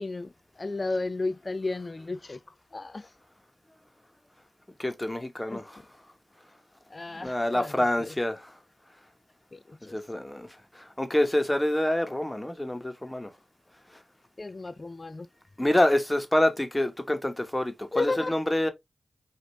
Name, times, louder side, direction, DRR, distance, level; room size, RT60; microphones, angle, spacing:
voice 1, 0.0-3.1 5.5-5.6 6.9-8.1 9.5-10.0 14.4-15.3 17.9-18.3, left 3 dB, 40° left, 0.4 m, -33 dB
voice 2, 4.8-5.8 7.1-8.6 9.9-13.3 15.6-18.7, left 1 dB, 15° left, 1.0 m, -27 dB
5.0 x 2.5 x 3.1 m
cardioid pair, 45°, 0 cm